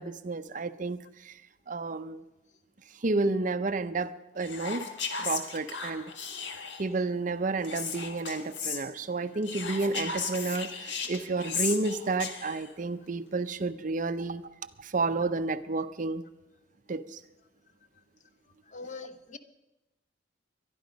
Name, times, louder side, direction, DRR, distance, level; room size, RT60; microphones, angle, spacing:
voice 1, 0.0-1.3 1.7-2.2 3.0-4.9 5.2-6.1 6.8-14.5 14.8-16.2 16.9-17.2, right 3 dB, 45° right, 0.6 m, -31 dB
Whispering, 4.4-6.9 7.6-8.8 9.4-12.7, left 5 dB, 70° left, 1.7 m, -36 dB
voice 2, 18.7-19.4, left 4 dB, 40° left, 0.9 m, -42 dB
22.0 x 12.0 x 5.2 m
head